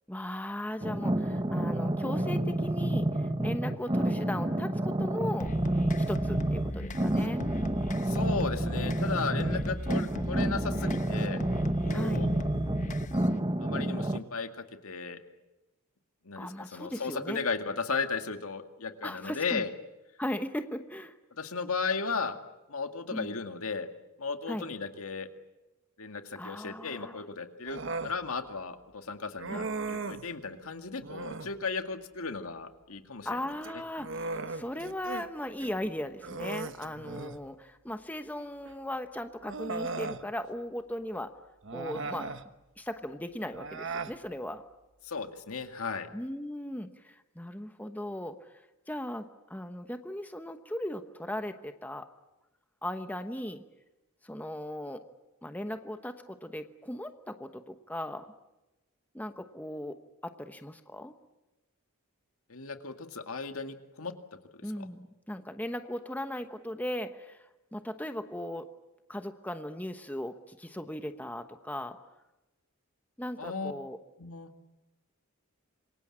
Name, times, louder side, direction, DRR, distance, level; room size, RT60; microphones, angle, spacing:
voice 1, 0.1-5.5 6.0-7.4 11.9-12.2 16.4-17.4 19.0-19.6 20.2-21.1 23.1-23.3 24.5-24.7 26.3-27.2 29.5-29.7 33.2-41.3 41.7-42.3 42.8-44.6 46.1-48.5 48.9-52.1 52.8-53.6 54.2-55.0 55.4-58.3 59.1-61.1 64.6-67.5 67.7-68.7 69.1-72.0 73.2-74.0, left 1 dB, 5° left, 8 dB, 1.0 m, -37 dB
sound 1, 0.8-14.2, right 1 dB, 20° right, 1.0 m, -29 dB
sound 2, 5.4-13.4, left 1 dB, 35° left, 1.2 m, -38 dB
voice 2, 8.0-11.4 11.8-12.3 13.6-15.2 16.2-19.7 21.3-22.4 22.7-23.9 24.2-25.3 26.0-33.4 45.0-46.1 62.5-64.1 64.5-64.9 73.4-73.7 74.2-74.5, left 4 dB, 75° left, 7 dB, 2.1 m, -35 dB
Human voice, 27.7-28.2 29.4-30.3 31.0-31.6 33.5-35.3 35.6-35.7 36.2-37.4 38.6-38.7 39.4-40.2 41.6-42.5 43.5-44.2, right 3 dB, 55° right, 1.2 m, -37 dB
27.5 x 23.5 x 8.7 m, 1.0 s
head